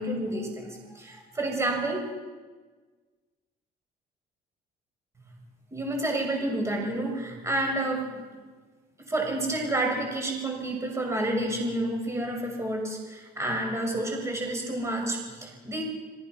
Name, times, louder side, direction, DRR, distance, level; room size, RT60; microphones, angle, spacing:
voice 1, 0.0-2.1 5.7-8.2 9.0-15.8, right 1 dB, 15° right, 1 dB, 6.4 m, -29 dB
28.5 x 20.5 x 6.3 m, 1.4 s
cardioid pair, 110°, 17 cm